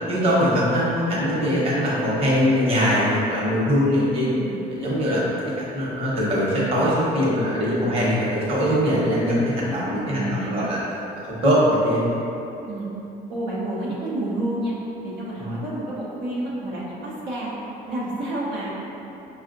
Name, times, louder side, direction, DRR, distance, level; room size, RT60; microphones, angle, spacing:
voice 1, 0.1-4.3 4.7-5.3 5.7-10.8 11.2-12.0 15.4-15.6, equal, 35° right, -7 dB, 1.0 m, -22 dB
voice 2, 4.0-4.6 7.9-8.0 10.1-10.7 12.7-12.9 13.3-14.7 15.0-17.5 17.9-18.7, right 1 dB, 85° right, -7 dB, 0.9 m, -29 dB
5.3 x 2.4 x 2.6 m, 3.0 s
cardioid pair, 110°, 17 cm